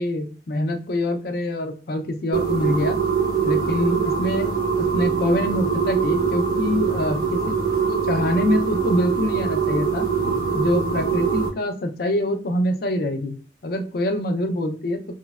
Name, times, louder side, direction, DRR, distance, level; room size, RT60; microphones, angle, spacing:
voice 1, 0.0-3.0 3.4-4.5 4.8-7.5 7.9-10.1 10.5-13.3 13.6-15.0, left 1 dB, 60° left, 6 dB, 0.5 m, -25 dB
sound 1, 2.3-11.5, right 6 dB, 55° right, 0.8 m, -23 dB
3.0 x 2.0 x 2.3 m, 0.38 s
head